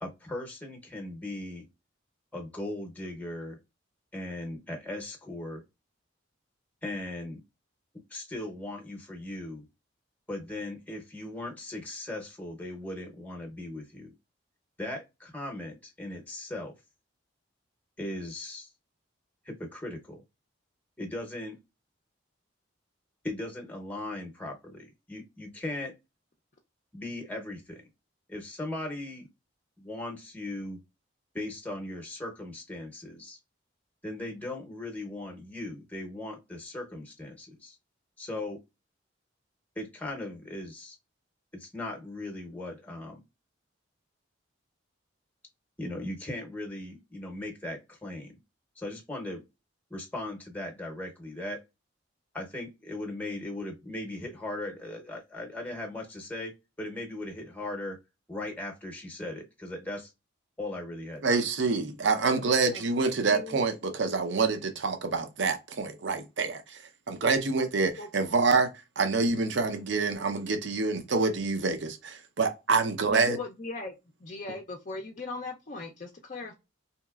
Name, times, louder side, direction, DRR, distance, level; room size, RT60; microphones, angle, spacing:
voice 1, 0.0-1.7 2.3-3.6 4.1-5.6 6.8-7.4 8.1-9.6 10.3-14.1 14.8-16.7 18.0-18.7 19.4-20.2 21.0-21.6 23.2-25.9 26.9-27.8 28.3-29.3 29.8-30.8 31.3-33.4 34.0-37.8 38.2-38.6 39.8-41.0 41.5-43.2 45.8-48.4 48.8-49.4 49.9-51.6 52.3-58.0 58.3-60.1 60.6-61.4, left 1 dB, 10° left, 0.8 m, -38 dB
voice 2, 61.2-66.8 67.1-68.7 69.0-73.4, right 4 dB, 65° right, 0.6 m, -27 dB
voice 3, 63.3-63.6 68.0-68.1 73.1-73.9 74.2-76.5, left 3 dB, 40° left, 0.5 m, -38 dB
4.0 x 2.9 x 2.3 m
head